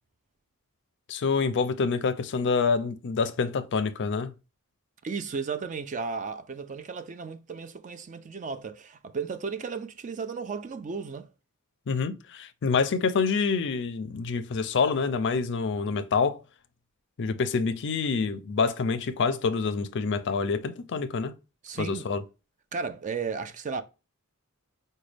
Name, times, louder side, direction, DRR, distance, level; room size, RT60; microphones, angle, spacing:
voice 1, 1.1-4.3 11.9-16.4 17.2-21.3 21.8-22.2, left 5 dB, 55° left, 0.4 m, -27 dB
voice 2, 5.0-11.3 21.6-22.1 22.7-23.8, right 5 dB, 35° right, 0.4 m, -34 dB
5.0 x 2.2 x 3.3 m
head